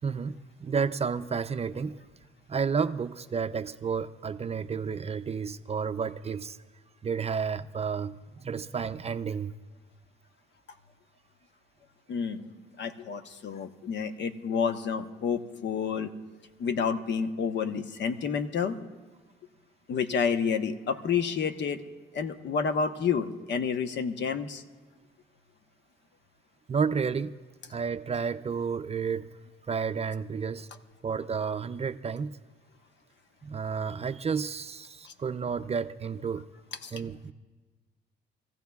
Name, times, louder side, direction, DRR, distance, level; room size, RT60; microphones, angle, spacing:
voice 1, 0.0-0.4 0.6-1.9 2.5-6.6 7.0-8.2 8.4-9.5 26.7-27.3 27.7-29.2 29.7-30.7 31.0-32.3 33.4-36.4 36.9-37.3, right 6 dB, 30° right, 11 dB, 0.5 m, -31 dB
voice 2, 12.1-12.4 12.8-16.1 16.6-18.8 19.9-21.8 22.1-24.6 35.0-35.1 36.8-36.9, left 6 dB, 65° left, 8 dB, 1.0 m, -29 dB
27.0 x 15.0 x 2.4 m, 1.3 s
cardioid pair, 90°, 20 cm